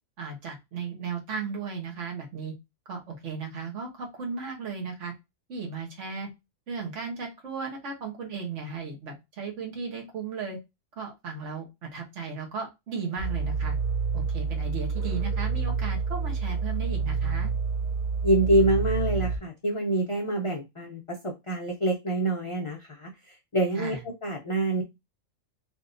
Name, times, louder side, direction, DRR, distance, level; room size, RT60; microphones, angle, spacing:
voice 1, 0.2-2.5 2.9-5.1 5.5-6.3 6.7-10.6 11.0-13.8 14.1-17.5 23.7-24.0, right 5 dB, 65° right, 0 dB, 1.5 m, -35 dB
sound 1, 13.2-19.4, right 5 dB, 45° right, 0.8 m, -28 dB
voice 2, 18.2-24.8, right 1 dB, 35° left, 0 dB, 0.5 m, -26 dB
3.5 x 2.8 x 2.5 m, 0.22 s
omnidirectional pair, 1.4 m